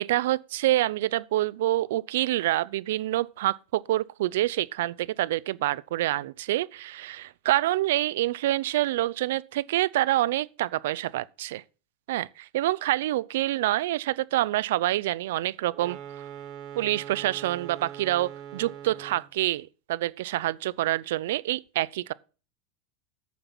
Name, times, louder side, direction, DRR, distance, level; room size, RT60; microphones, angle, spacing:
voice 1, 0.0-11.6 12.1-16.0 16.8-22.1, right 15 dB, 75° right, 0.6 m, -27 dB
sound 1, 15.7-19.3, right 10 dB, 45° right, 2.7 m, -42 dB
9.4 x 7.0 x 6.1 m
supercardioid pair, 140°, 0 cm